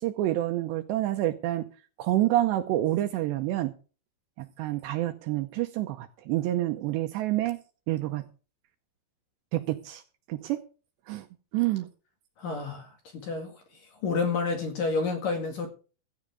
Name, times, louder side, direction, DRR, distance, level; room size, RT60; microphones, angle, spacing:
voice 1, 0.0-1.7 2.0-3.7 4.4-7.6 7.9-8.3 9.5-10.0 10.3-10.6 11.1-11.3 11.5-11.9, right 15 dB, 80° right, 2.6 m, -28 dB
voice 2, 12.4-13.6 14.0-15.7, left 4 dB, 55° left, 2.9 m, -29 dB
16.0 x 13.0 x 3.5 m
omnidirectional pair, 5.7 m